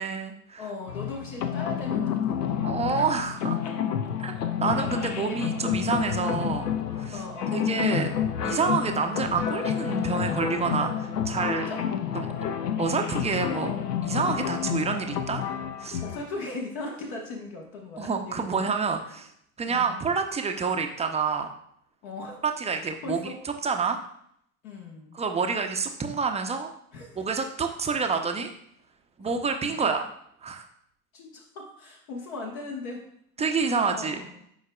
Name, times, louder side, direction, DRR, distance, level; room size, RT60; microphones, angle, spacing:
voice 1, 0.0-0.6 2.6-3.6 4.2-6.7 7.0-7.2 7.5-8.2 8.4-11.7 12.1-12.3 12.8-13.8 14.0-15.4 15.8-16.0 18.0-19.3 19.6-21.5 22.4-24.0 25.1-26.7 27.1-28.5 29.2-30.0 30.4-30.7 33.4-34.2, right 5 dB, 15° right, 5 dB, 0.6 m, -28 dB
voice 2, 0.6-2.7 3.4-3.8 4.7-5.4 7.1-7.8 11.5-11.8 16.0-18.7 19.6-20.0 22.0-22.4 23.0-23.4 24.6-25.2 26.9-27.3 29.8-29.9 31.1-33.0 33.7-34.4, left 3 dB, 60° left, 0 dB, 1.3 m, -38 dB
sound 1, 0.9-16.2, left 9 dB, 80° left, 0.7 m, -29 dB
10.0 x 4.8 x 2.3 m, 0.69 s
figure-of-eight pair, 70°, 47 cm